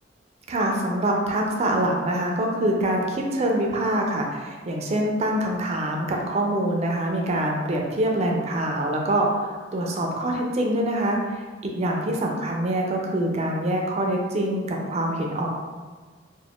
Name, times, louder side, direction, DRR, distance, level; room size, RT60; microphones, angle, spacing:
voice 1, 0.5-15.5, right 1 dB, 35° right, 0 dB, 0.4 m, -25 dB
2.3 x 2.1 x 3.4 m, 1.4 s
head